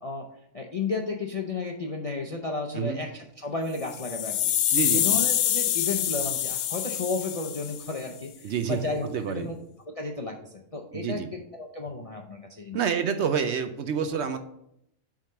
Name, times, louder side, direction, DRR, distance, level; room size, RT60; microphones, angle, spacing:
voice 1, 0.5-4.5 4.9-9.5 9.9-12.8, left 3 dB, 45° left, 1 dB, 0.4 m, -33 dB
sound 1, 3.8-8.0, left 11 dB, 80° left, 1.0 m, -26 dB
voice 2, 4.7-5.2 8.4-8.8 9.1-9.5 10.9-11.3 12.7-14.4, right 7 dB, 65° right, 9 dB, 0.8 m, -28 dB
7.5 x 3.7 x 5.5 m, 0.76 s
omnidirectional pair, 1.4 m